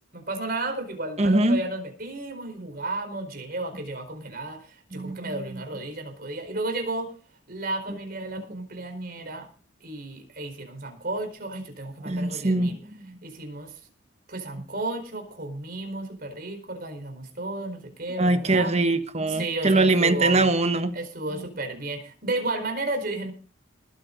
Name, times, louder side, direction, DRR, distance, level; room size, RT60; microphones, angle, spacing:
voice 1, 0.1-7.1 7.5-9.5 9.8-12.8 13.2-13.8 14.3-18.7 19.4-20.5 20.9-23.3, right 2 dB, 50° right, 4.5 m, -33 dB
voice 2, 1.2-1.6 4.9-5.6 12.0-13.2 18.2-20.9 21.3-21.5, right 2 dB, 35° right, 1.2 m, -23 dB
20.0 x 9.3 x 4.0 m
head